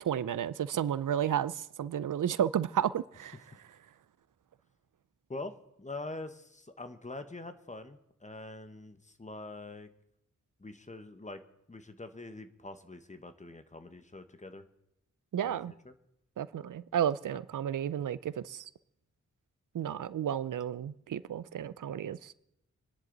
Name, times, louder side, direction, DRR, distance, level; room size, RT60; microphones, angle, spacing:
voice 1, 0.0-3.4 15.3-15.7 16.4-18.7 19.7-22.3, right 9 dB, 85° right, 0.5 m, -32 dB
voice 2, 5.3-9.9 10.6-11.4 11.7-14.6 15.4-15.9, left 2 dB, 25° left, 1.2 m, -44 dB
27.0 x 10.5 x 4.0 m
wide cardioid pair, 110°, 30 cm